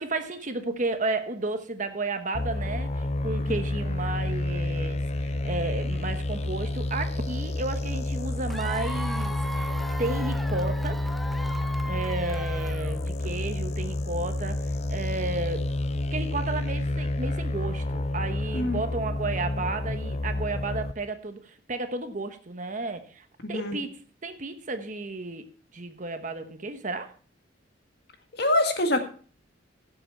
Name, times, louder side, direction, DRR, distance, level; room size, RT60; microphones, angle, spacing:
voice 1, 0.0-9.7 10.0-11.1 11.8-15.7 16.1-23.9 24.2-25.5 25.7-27.1, right 3 dB, 45° right, 8 dB, 1.1 m, -33 dB
sound 1, 2.3-20.9, left 1 dB, 35° left, 0.5 m, -29 dB
Cheering / Applause / Crowd, 8.5-13.2, equal, ahead, 0.7 m, -38 dB
voice 2, 23.4-23.8 28.4-29.1, left 1 dB, 60° left, 5 dB, 1.8 m, -25 dB
16.0 x 7.3 x 4.5 m, 0.42 s
head